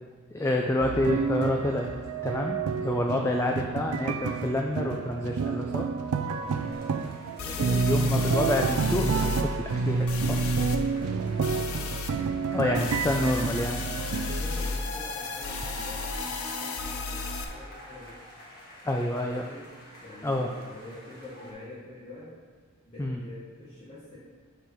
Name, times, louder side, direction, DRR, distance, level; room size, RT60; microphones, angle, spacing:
voice 1, 0.3-1.9 2.2-5.9 7.5-10.4 12.5-13.8 18.8-19.4 20.2-20.5 23.0-23.2, left 1 dB, 15° left, 1 dB, 0.3 m, -28 dB
sound 1, 0.8-14.4, right 4 dB, 85° right, 0.4 m, -29 dB
sound 2, 6.1-13.4 14.1-21.5, left 1 dB, 45° left, 1.5 m, -47 dB
sound 3, 6.7-6.8 7.4-9.4 10.1-10.8 11.4-12.1 12.7-17.4, left 3 dB, 75° left, 0.6 m, -33 dB
voice 2, 10.1-12.0 14.0-18.2 19.1-19.7 20.0-22.4 22.9-24.2, left 1 dB, 30° left, -10 dB, 1.1 m, -46 dB
6.9 x 4.4 x 4.6 m, 1.5 s
head